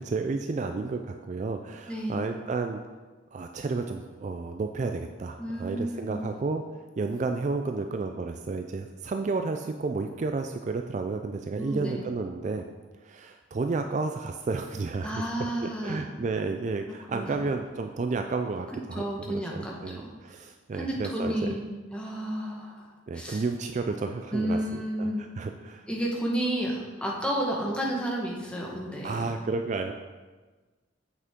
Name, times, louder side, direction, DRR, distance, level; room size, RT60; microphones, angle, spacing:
voice 1, 0.0-2.8 3.3-6.6 7.0-12.6 13.0-15.2 15.6-21.6 23.1-25.9 29.0-29.9, right 3 dB, 40° right, 5 dB, 0.3 m, -31 dB
voice 2, 1.9-2.2 5.4-6.3 11.6-12.0 15.0-16.0 17.1-17.4 18.9-20.1 20.7-23.4 24.3-25.2 25.9-29.3, right 1 dB, 5° left, -2 dB, 1.1 m, -31 dB
8.1 x 6.1 x 3.6 m, 1.3 s
head